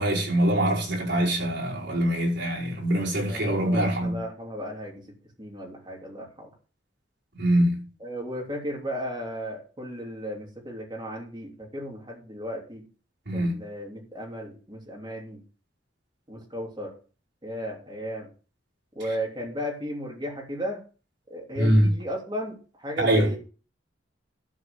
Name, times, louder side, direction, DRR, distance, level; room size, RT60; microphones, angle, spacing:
voice 1, 0.0-4.2 7.4-7.8 13.3-13.6 21.5-21.9 23.0-23.3, right 1 dB, 75° right, 5.2 m, -23 dB
voice 2, 3.2-6.5 8.0-12.8 13.3-15.4 16.3-16.9 17.4-18.3 18.9-20.8 21.3-23.4, equal, 25° right, 3.3 m, -35 dB
12.5 x 4.8 x 6.7 m
head